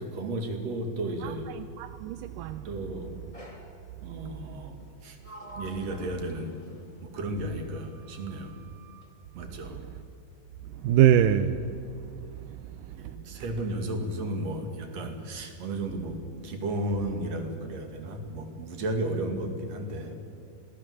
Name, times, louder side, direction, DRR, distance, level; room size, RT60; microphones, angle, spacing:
voice 1, 0.0-1.5 2.6-3.2 4.0-5.2 5.6-6.6 7.0-8.6 9.3-9.8 13.0-20.2, right 1 dB, 45° right, 5 dB, 3.1 m, -33 dB
voice 2, 1.2-2.7 10.8-11.6, right 10 dB, 80° right, 10 dB, 2.0 m, -23 dB
Sliding door, 3.3-3.8 4.8-7.2 7.7-9.1, right 1 dB, 10° left, 2.2 m, -48 dB
26.5 x 18.0 x 7.9 m, 2.5 s
omnidirectional pair, 4.5 m